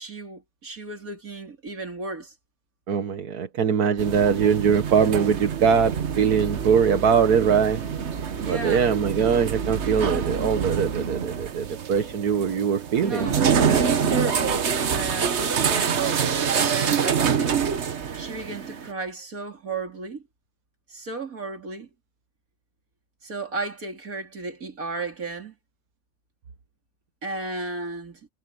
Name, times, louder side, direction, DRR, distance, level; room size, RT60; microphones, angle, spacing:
voice 1, 0.0-2.3 8.4-9.0 13.0-17.6 18.2-20.2 20.9-21.9 23.2-25.6 27.2-28.3, right 4 dB, 65° right, 3.8 m, -34 dB
voice 2, 2.9-7.9 8.5-13.9, right 7 dB, 85° right, 1.9 m, -22 dB
sound 1, 4.0-18.9, right 7 dB, 50° right, 1.3 m, -26 dB
omnidirectional pair, 1.6 m